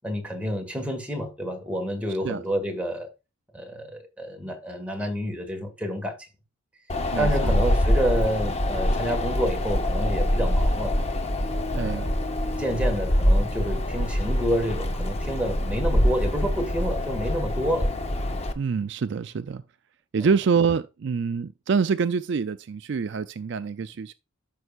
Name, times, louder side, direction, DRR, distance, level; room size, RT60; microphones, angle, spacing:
voice 1, 0.0-3.1 3.5-6.3 7.2-11.0 11.7-12.0 12.6-17.9, equal, 5° right, 1.6 m, -29 dB
Wind, 6.9-18.5, left 1 dB, 30° left, 0.8 m, -25 dB
voice 2, 7.1-7.6 11.7-12.1 18.6-19.6 20.1-24.1, right 5 dB, 55° right, 0.4 m, -26 dB
12.5 x 5.5 x 2.4 m
head